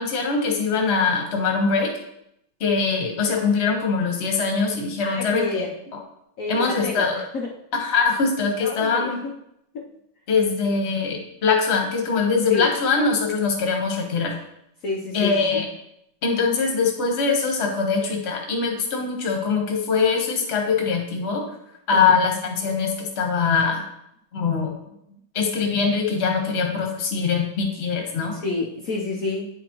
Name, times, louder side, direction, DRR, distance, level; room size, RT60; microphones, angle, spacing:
voice 1, 0.0-1.9 2.6-5.7 5.9-6.0 6.5-7.2 7.7-9.2 10.3-14.4 15.1-15.7 16.2-21.4 21.9-23.8 24.3-24.8 25.3-28.4, left 5 dB, 40° left, 1 dB, 1.1 m, -22 dB
voice 2, 5.0-5.7 6.4-7.1 7.3-7.5 8.6-9.3 9.7-9.9 12.5-12.7 14.8-15.6 21.4-21.5 21.9-22.1 25.1-25.2 28.3-29.5, left 3 dB, 80° left, -2 dB, 0.7 m, -29 dB
9.1 x 5.0 x 3.0 m, 0.79 s
omnidirectional pair, 2.4 m